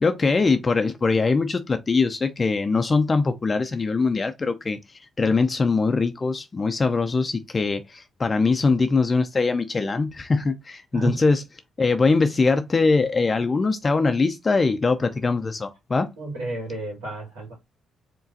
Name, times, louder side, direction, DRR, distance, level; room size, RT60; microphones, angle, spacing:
voice 1, 0.0-4.8 5.2-11.4 11.8-16.1, left 4 dB, 35° left, 0.5 m, -22 dB
voice 2, 16.2-17.5, right 2 dB, 85° right, 1.9 m, -30 dB
4.8 x 3.0 x 2.7 m
hypercardioid pair, 50°, 0 cm